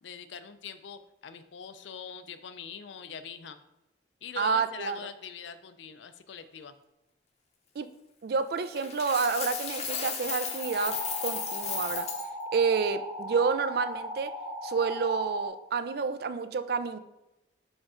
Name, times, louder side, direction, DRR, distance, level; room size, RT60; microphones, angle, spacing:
voice 1, 0.0-3.6 4.2-6.7, left 7 dB, 75° left, 11 dB, 0.5 m, -43 dB
voice 2, 4.4-5.0 7.8-7.9 8.2-12.1 12.5-14.3 14.6-17.0, right 5 dB, 55° right, 12 dB, 0.4 m, -29 dB
Coin (dropping), 8.8-12.3, left 7 dB, 35° left, 0.7 m, -35 dB
sound 1, 10.5-15.5, equal, 30° right, 1.6 m, -38 dB
5.1 x 5.1 x 3.6 m, 0.94 s
head